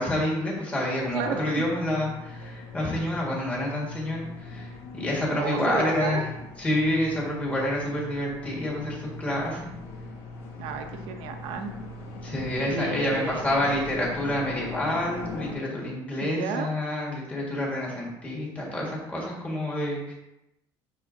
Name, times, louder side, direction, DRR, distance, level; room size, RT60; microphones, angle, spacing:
voice 1, 0.0-6.3 6.6-9.7 12.2-20.1, left 1 dB, 15° left, -4 dB, 1.7 m, -28 dB
sound 1, 1.0-15.5, left 2 dB, 75° left, 1.5 m, -40 dB
voice 2, 1.1-1.7 2.8-2.9 5.3-6.2 10.6-11.7 12.7-13.5 16.2-16.7, right 6 dB, 75° right, 5 dB, 0.7 m, -32 dB
11.0 x 4.0 x 2.7 m, 0.90 s
cardioid pair, 175°, 9 cm